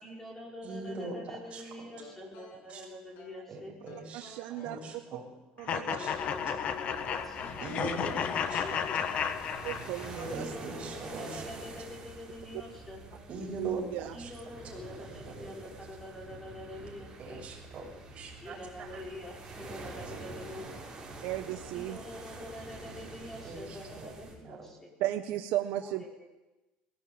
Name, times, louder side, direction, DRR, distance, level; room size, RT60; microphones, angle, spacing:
voice 1, 0.0-3.7 5.7-9.4 10.3-13.2 14.1-17.4 18.4-20.8 21.7-24.9 25.8-26.3, left 1 dB, 10° left, -1 dB, 5.3 m, -46 dB
voice 2, 0.6-1.2 2.7-2.8 3.5-5.2 5.8-6.1 7.6-8.1 8.5-8.6 10.1-11.7 13.3-13.8 14.2-14.3 15.3-15.5 17.2-19.0 19.6-20.4 23.4-24.1 24.4-24.6, right 2 dB, 35° right, 0 dB, 6.9 m, -42 dB
sound 1, 2.0-3.4 3.9-4.8 5.7-7.2 7.6-8.6, left 2 dB, 65° left, 7.1 m, -53 dB
voice 3, 4.1-4.8 5.6-6.0 9.6-10.5 13.6-14.1 21.2-22.0 25.0-26.0, right 14 dB, 65° right, 7 dB, 1.1 m, -34 dB
sound 2, 5.7-10.3, left 7 dB, 40° left, 1.4 m, -33 dB
sound 3, 6.1-24.3, right 2 dB, 15° right, 6.9 m, -47 dB
21.0 x 17.0 x 8.7 m, 1.0 s
cardioid pair, 155°, 3 cm